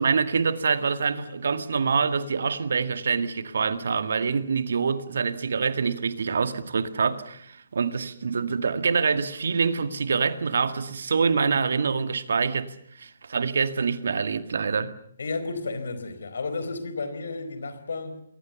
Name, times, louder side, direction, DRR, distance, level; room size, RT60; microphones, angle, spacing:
voice 1, 0.0-14.9, right 5 dB, 60° right, 1.9 m, -25 dB
voice 2, 15.2-18.2, left 3 dB, 65° left, 4.4 m, -32 dB
28.5 x 22.0 x 7.0 m
figure-of-eight pair, 135°, 0 cm